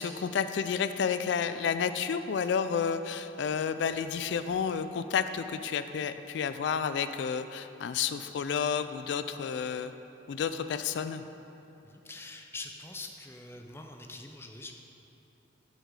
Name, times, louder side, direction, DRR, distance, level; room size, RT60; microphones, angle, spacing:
voice 1, 0.0-9.9 10.3-11.2, left 6 dB, 75° left, 11 dB, 0.3 m, -31 dB
voice 2, 11.8-14.7, left 3 dB, 15° left, 3 dB, 0.5 m, -44 dB
8.2 x 7.5 x 4.8 m, 3.0 s
head